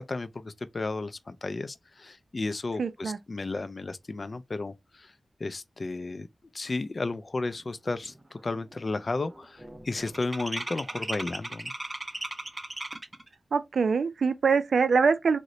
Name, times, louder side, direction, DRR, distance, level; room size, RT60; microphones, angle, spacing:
voice 1, 0.0-5.1 5.4-6.3 6.5-11.7, left 3 dB, 50° left, 0.3 m, -33 dB
voice 2, 2.8-3.2 13.5-15.4, right 5 dB, 85° right, 0.4 m, -24 dB
sound 1, 7.6-7.7 8.0-8.4 8.6-13.3, right 1 dB, 25° right, 0.5 m, -37 dB
3.7 x 2.1 x 3.0 m
wide cardioid pair, 65°, 0 cm